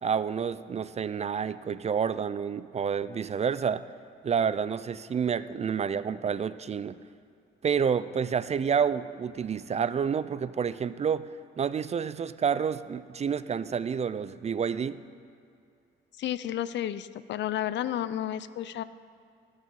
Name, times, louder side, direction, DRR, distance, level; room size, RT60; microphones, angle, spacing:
voice 1, 0.0-3.8 4.2-7.0 7.6-15.0, right 7 dB, 35° right, 15 dB, 0.4 m, -29 dB
voice 2, 16.2-18.8, left 11 dB, 65° left, 15 dB, 0.5 m, -32 dB
18.5 x 6.5 x 5.3 m, 2.4 s
cardioid pair, 90°, 20 cm